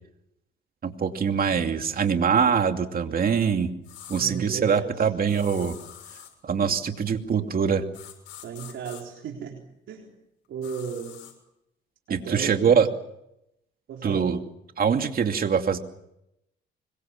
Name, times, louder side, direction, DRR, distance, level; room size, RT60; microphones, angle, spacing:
voice 1, 0.8-3.7 4.1-5.7 6.4-7.8 12.1-12.9 14.0-14.4 14.8-15.8, right 6 dB, 50° right, 6 dB, 2.7 m, -23 dB
sound 1, 3.8-4.3 5.3-6.3 7.9-9.0 10.6-11.3, left 11 dB, 85° left, 6.8 m, -45 dB
voice 2, 4.1-5.1 6.6-6.8 8.4-9.6 9.9-10.1 10.5-11.2 12.1-12.8 13.9-14.3, right 7 dB, 75° right, 0 dB, 4.1 m, -35 dB
25.5 x 23.0 x 7.3 m, 0.82 s
cardioid pair, 90°, 20 cm